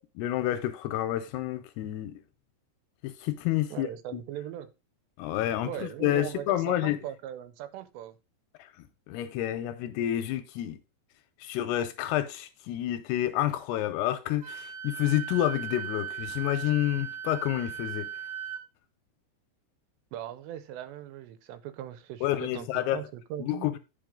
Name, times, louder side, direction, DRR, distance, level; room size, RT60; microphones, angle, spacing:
voice 1, 0.2-2.2 3.0-4.2 5.2-7.0 8.6-8.7 9.1-10.8 11.4-18.1 22.2-23.0 23.4-23.8, left 13 dB, 85° left, 2.4 m, -29 dB
voice 2, 3.7-4.7 5.6-8.2 20.1-23.7, right 11 dB, 85° right, 2.9 m, -39 dB
Wind instrument woodwind instrument, 14.4-18.6, right 9 dB, 55° right, 2.4 m, -38 dB
8.8 x 5.4 x 3.7 m
omnidirectional pair, 4.9 m